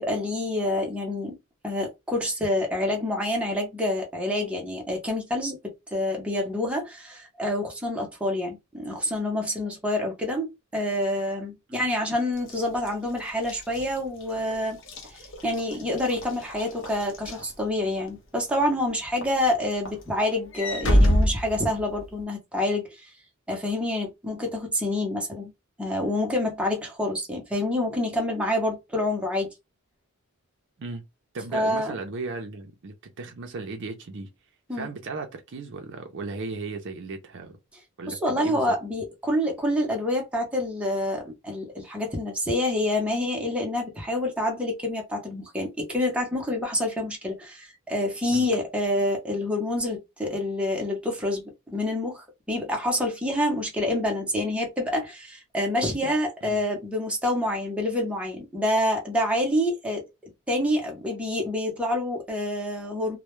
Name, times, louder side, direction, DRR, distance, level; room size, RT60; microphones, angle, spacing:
voice 1, 0.0-1.4 1.6-5.6 5.9-23.1 23.5-25.5 25.8-29.5 31.5-31.9 34.7-34.9 38.1-60.0 60.5-63.2, left 1 dB, 5° right, 0.7 m, -27 dB
Walk footsteps / Slam, 12.4-18.1 18.6-18.9 19.2-22.2, equal, 60° left, 0.7 m, -27 dB
voice 2, 31.3-34.3 34.7-37.6 38.0-38.6 48.3-48.5 56.4-56.6, right 3 dB, 55° right, 0.5 m, -36 dB
2.2 x 2.1 x 3.0 m
head